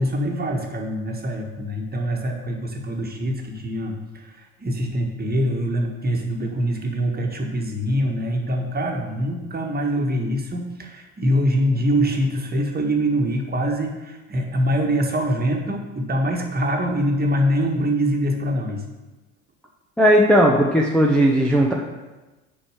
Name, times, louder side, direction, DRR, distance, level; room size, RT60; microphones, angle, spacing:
voice 1, 0.0-18.8, equal, 25° right, 1 dB, 1.8 m, -24 dB
voice 2, 20.0-21.7, equal, ahead, -2 dB, 1.1 m, -16 dB
7.1 x 5.3 x 6.5 m, 1.1 s
hypercardioid pair, 65°, 40 cm